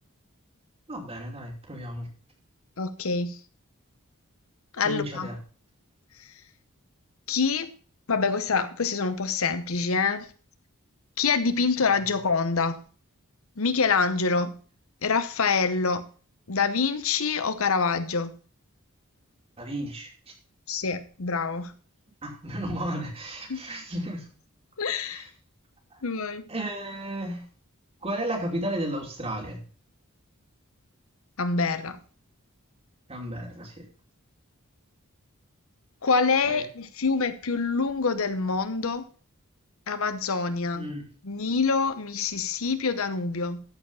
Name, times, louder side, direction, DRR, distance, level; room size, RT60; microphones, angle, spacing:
voice 1, 0.9-2.1 4.8-5.4 11.8-11.9 19.6-20.1 22.2-24.2 25.1-25.2 26.5-27.4 28.0-29.6 33.1-33.8 36.4-36.7 40.7-41.1, right 1 dB, 25° right, 2.7 m, -33 dB
voice 2, 2.8-3.4 4.7-5.3 7.3-7.7 8.1-10.3 11.2-12.8 13.6-14.6 15.0-16.1 16.5-18.3 20.7-21.7 23.5-23.6 24.8-25.3 26.0-26.4 31.4-32.0 36.0-39.1 39.9-40.9 41.2-43.6, left 4 dB, 70° left, 0.9 m, -26 dB
13.5 x 4.9 x 5.6 m
head